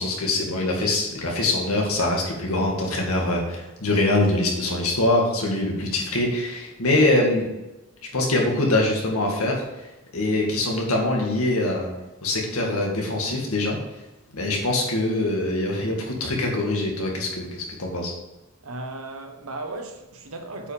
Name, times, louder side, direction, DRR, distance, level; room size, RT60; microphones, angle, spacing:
voice 1, 0.0-7.5 8.1-11.9 12.2-13.8 14.3-18.1, left 2 dB, 80° left, 2.1 m, -23 dB
voice 2, 18.6-20.7, right 2 dB, 75° right, 1.2 m, -35 dB
8.2 x 5.4 x 5.1 m
head